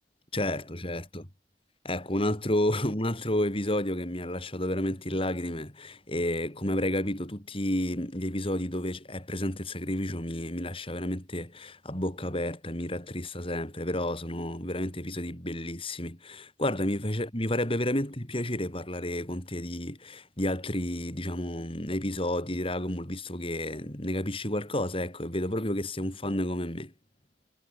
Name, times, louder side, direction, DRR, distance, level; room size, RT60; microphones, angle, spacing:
voice 1, 0.3-1.2 1.8-26.9, left 1 dB, 30° left, 6.0 m, -31 dB
head